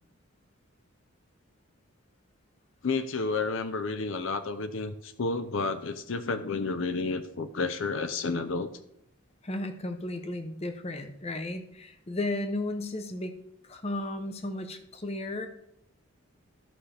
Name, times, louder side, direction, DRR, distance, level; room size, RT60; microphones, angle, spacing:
voice 1, 2.8-8.7, left 4 dB, 65° left, 10 dB, 0.6 m, -31 dB
voice 2, 9.4-13.3 13.6-15.5, left 1 dB, 30° left, 7 dB, 0.7 m, -34 dB
13.5 x 5.7 x 3.3 m, 0.78 s
head